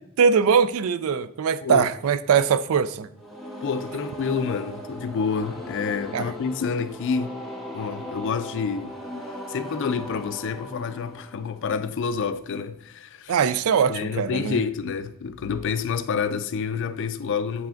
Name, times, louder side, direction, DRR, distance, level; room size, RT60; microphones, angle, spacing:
voice 1, 0.2-3.1 6.1-6.3 13.3-14.6, right 6 dB, 70° right, 0.3 m, -21 dB
voice 2, 1.6-1.9 3.6-7.4 7.7-8.9 9.5-13.3 13.9-17.7, left 5 dB, 55° left, 0.3 m, -28 dB
sound 1, 3.2-12.1, equal, ahead, 1.0 m, -38 dB
7.8 x 5.6 x 2.5 m
head